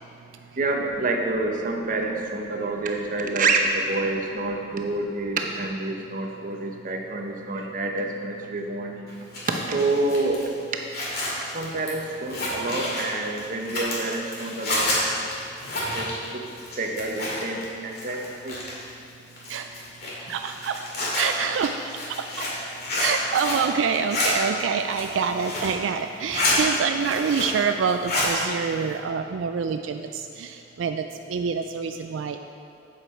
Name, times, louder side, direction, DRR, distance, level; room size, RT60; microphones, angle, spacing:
voice 1, 0.6-9.0 9.5-10.4 11.4-15.0 15.9-16.4 16.8-18.6, right 2 dB, 45° right, 2 dB, 0.8 m, -27 dB
Zipper (clothing), 9.1-17.7 17.9-18.9 19.4-23.7 23.9-24.3 24.8-25.8 26.1-26.6 26.9-27.6 27.9-28.3, left 2 dB, 55° left, 2.3 m, -29 dB
voice 2, 19.5-19.8 20.2-20.8 21.1-21.8 22.1-22.5 23.0-32.4, right 6 dB, 85° right, 7 dB, 0.3 m, -26 dB
8.2 x 8.1 x 4.4 m, 2.4 s
head